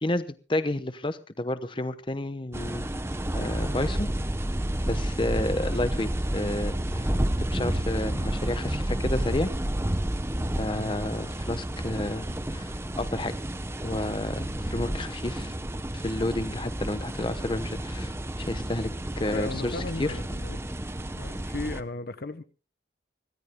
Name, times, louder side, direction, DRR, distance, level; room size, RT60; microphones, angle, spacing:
voice 1, 0.0-2.9 3.3-4.1 4.9-7.1 7.4-9.5 10.6-13.3 13.8-15.5 15.9-20.1, left 1 dB, 25° left, 0.9 m, -31 dB
sound 1, 2.5-21.8, right 1 dB, 15° right, 0.7 m, -30 dB
voice 2, 19.3-20.6 21.2-22.4, left 3 dB, 55° left, 0.8 m, -36 dB
25.0 x 17.0 x 2.2 m
head